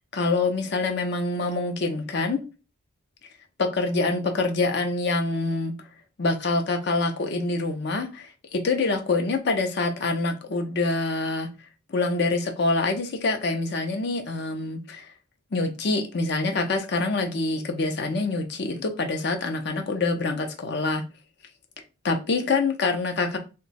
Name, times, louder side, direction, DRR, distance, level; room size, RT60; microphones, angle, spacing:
voice 1, 0.1-2.4 3.6-5.9 6.2-11.5 11.9-15.1 15.5-21.0 22.0-23.4, left 3 dB, 55° left, 0.5 m, -26 dB
2.9 x 2.2 x 4.1 m
head